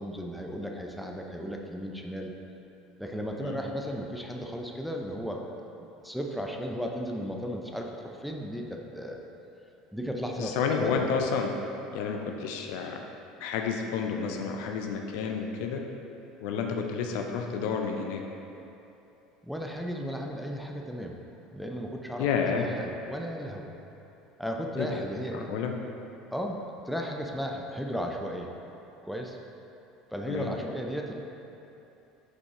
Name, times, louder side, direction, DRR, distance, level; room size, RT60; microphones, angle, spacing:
voice 1, 0.0-2.4 3.0-9.2 9.9-11.2 19.4-21.2 21.5-23.7 24.4-25.5 26.3-28.5 29.0-29.4 30.1-31.1, equal, ahead, 1 dB, 0.7 m, -35 dB
voice 2, 10.4-11.5 11.9-13.0 13.4-15.8 16.4-18.2 22.2-22.7 24.8-25.0 25.3-25.7 30.3-30.5, left 6 dB, 65° left, 3 dB, 0.5 m, -30 dB
6.4 x 5.1 x 3.7 m, 2.9 s
hypercardioid pair, 70°, 0 cm